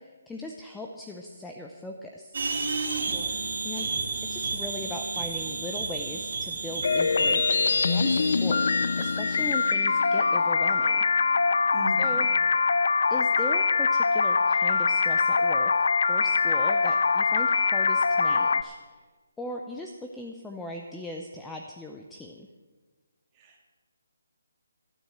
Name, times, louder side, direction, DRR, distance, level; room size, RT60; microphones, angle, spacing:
voice 1, 0.0-2.4 3.6-3.9 4.2-8.7 9.0-11.1 12.0-12.7 13.1-18.9 19.4-22.5, left 2 dB, 5° left, 2 dB, 0.5 m, -39 dB
sound 1, 2.3-9.7, right 4 dB, 45° right, 2.9 m, -32 dB
voice 2, 2.9-3.4 11.7-12.2 23.4-23.7, right 1 dB, 15° right, -1 dB, 2.1 m, -39 dB
sound 2, 6.8-18.6, left 4 dB, 60° left, 0.6 m, -23 dB
12.0 x 9.7 x 7.6 m, 1.4 s
hypercardioid pair, 170°, 0 cm